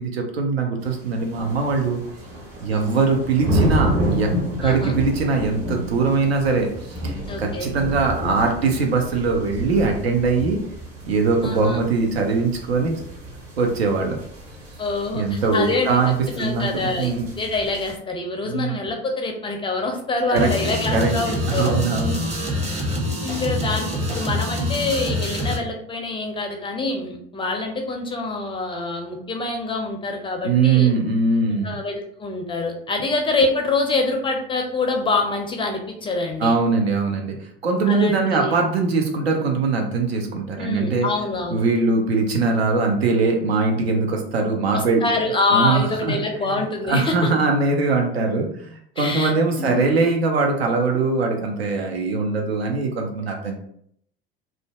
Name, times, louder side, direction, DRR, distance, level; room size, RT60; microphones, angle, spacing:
voice 1, 0.0-2.0 2.6-4.3 4.6-10.6 11.1-13.0 13.6-14.2 15.1-16.7 17.0-17.3 18.5-18.7 20.3-20.5 20.9-21.1 21.6-22.2 30.4-31.8 36.4-37.3 37.6-41.1 41.5-45.0 45.5-46.1 46.4-46.6 46.9-53.6, right 4 dB, 80° right, 2 dB, 0.6 m, -21 dB
sound 1, 0.8-17.9, equal, 45° right, 1.3 m, -30 dB
voice 2, 2.7-3.0 4.6-4.9 7.3-7.7 11.4-11.8 14.8-16.0 16.3-21.7 23.2-30.9 31.5-36.5 37.9-38.5 40.5-41.6 44.7-47.3 49.0-49.3 49.6-50.0, left 3 dB, 15° left, 3 dB, 0.4 m, -25 dB
sound 2, 20.4-25.6, left 1 dB, 20° right, 0.8 m, -25 dB
2.5 x 2.1 x 2.3 m, 0.68 s
figure-of-eight pair, 70°, 31 cm